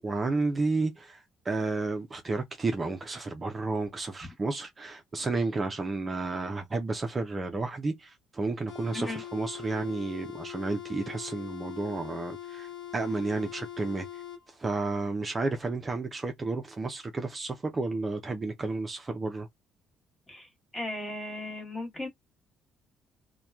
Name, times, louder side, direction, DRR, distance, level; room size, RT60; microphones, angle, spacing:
voice 1, 0.0-14.1 14.6-19.5, right 3 dB, 25° right, 0.4 m, -32 dB
sound 1, 8.7-14.4, left 11 dB, 65° left, 0.8 m, -42 dB
voice 2, 20.3-22.1, left 2 dB, 15° left, 1.1 m, -37 dB
2.8 x 2.1 x 2.3 m
cardioid pair, 110°, 0 cm